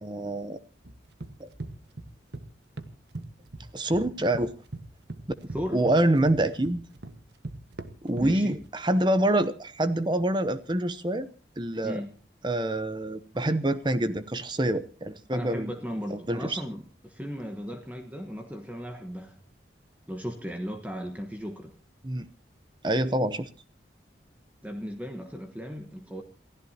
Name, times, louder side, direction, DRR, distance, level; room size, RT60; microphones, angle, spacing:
voice 1, 0.0-0.6 1.4-1.5 3.7-4.5 5.7-6.8 8.0-11.3 11.6-12.0 12.4-15.7 16.1-16.6 22.0-22.3 22.8-23.5, right 1 dB, 25° right, 0.8 m, -26 dB
sound 1, 0.8-2.5 2.8-4.1 4.3-8.6, right 2 dB, 75° right, 1.5 m, -40 dB
voice 2, 5.5-5.8 8.2-8.6 11.8-12.1 15.3-19.4 20.1-21.7 24.6-26.2, equal, 10° right, 1.2 m, -36 dB
28.0 x 15.5 x 2.8 m
head